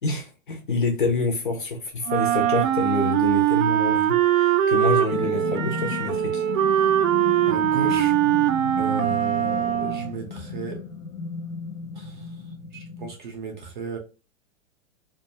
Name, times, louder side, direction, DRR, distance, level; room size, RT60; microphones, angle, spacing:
voice 1, 0.0-7.0, left 3 dB, 40° left, 0.4 m, -27 dB
Wind instrument woodwind instrument, 2.1-10.2, right 11 dB, 80° right, 0.6 m, -22 dB
sound 1, 5.1-13.1, left 5 dB, 85° left, 0.7 m, -35 dB
voice 2, 7.5-8.2 8.8-10.8 11.9-14.0, right 5 dB, 35° right, 0.6 m, -34 dB
2.3 x 2.2 x 2.6 m
hypercardioid pair, 180°, 40 cm